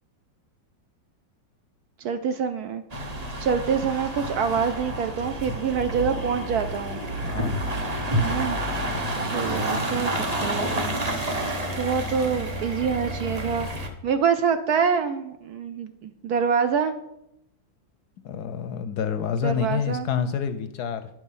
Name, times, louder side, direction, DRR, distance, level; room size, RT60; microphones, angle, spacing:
voice 1, 2.0-2.8 3.4-7.0 8.2-8.6 9.3-11.0 11.7-13.7 14.0-16.9 19.4-20.1, right 6 dB, 70° right, 9 dB, 0.9 m, -26 dB
sound 1, 2.9-13.9, right 1 dB, 25° right, 0.9 m, -29 dB
voice 2, 7.2-7.6 18.2-21.1, left 7 dB, 75° left, 10 dB, 1.0 m, -28 dB
10.0 x 6.1 x 5.5 m, 0.83 s
omnidirectional pair, 2.0 m